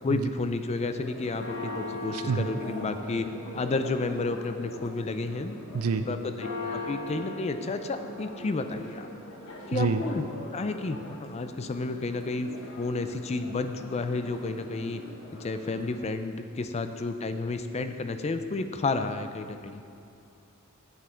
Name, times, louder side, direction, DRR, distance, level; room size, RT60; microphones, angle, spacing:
voice 1, 0.0-3.3 3.5-5.6 6.1-9.1 9.7-10.3 10.5-12.5 12.8-15.0 15.4-19.8, left 3 dB, 30° left, 9 dB, 0.4 m, -31 dB
Church bell, 1.0-16.0, left 2 dB, 60° left, 1.4 m, -41 dB
voice 2, 2.1-2.5 5.7-6.0 9.7-10.0, right 5 dB, 80° right, 9 dB, 0.5 m, -27 dB
8.4 x 8.0 x 4.4 m, 2.6 s
head